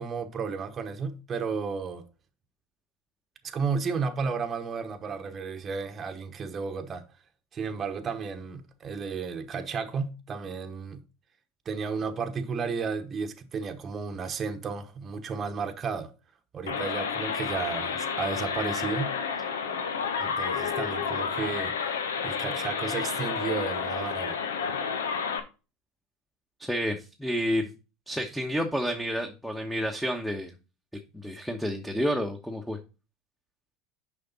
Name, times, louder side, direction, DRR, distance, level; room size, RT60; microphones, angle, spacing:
voice 1, 0.0-2.0 3.4-7.0 7.5-11.0 11.6-16.1 16.5-19.1 20.2-21.9 22.2-24.4, right 5 dB, 35° right, 1.0 m, -33 dB
sound 1, 16.7-25.4, left 6 dB, 85° left, 0.9 m, -30 dB
voice 2, 26.6-27.7 28.1-30.5 31.1-32.8, equal, ahead, 1.1 m, -30 dB
6.7 x 5.2 x 4.0 m
hypercardioid pair, 85°, 0 cm